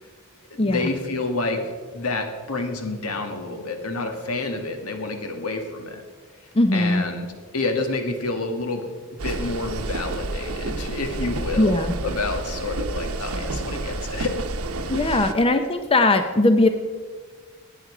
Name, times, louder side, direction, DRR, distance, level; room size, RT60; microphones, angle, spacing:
voice 1, 0.6-6.0 6.7-7.3 7.5-8.9 9.2-14.4 15.0-15.3, left 3 dB, 80° left, 5 dB, 1.7 m, -29 dB
voice 2, 6.5-7.0 11.6-12.0 14.9-16.7, left 2 dB, 25° left, 8 dB, 0.6 m, -19 dB
sound 1, 9.2-15.3, right 2 dB, 80° right, 0.9 m, -30 dB
16.5 x 9.1 x 4.9 m, 1.6 s
head